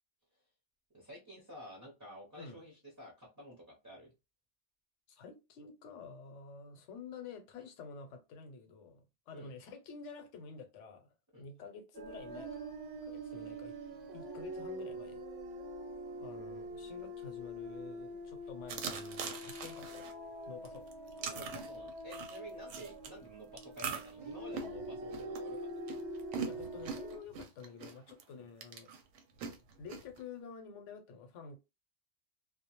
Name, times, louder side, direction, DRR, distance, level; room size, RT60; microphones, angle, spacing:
voice 1, 0.9-4.1 9.3-9.5 11.3-11.4 21.2-25.6 25.9-26.0 28.3-28.4, equal, 20° right, 0.6 m, -51 dB
voice 2, 5.1-12.8 13.0-13.7 14.1-15.2 16.2-20.1 20.5-20.9 26.4-28.9 29.8-31.6, left 5 dB, 80° left, 0.9 m, -49 dB
sound 1, 11.9-27.2, right 1 dB, 65° right, 0.7 m, -44 dB
sound 2, 18.7-20.1 20.6-23.1 23.6-28.2 28.6-30.2, right 6 dB, 90° right, 0.9 m, -42 dB
2.3 x 2.1 x 2.8 m
omnidirectional pair, 1.2 m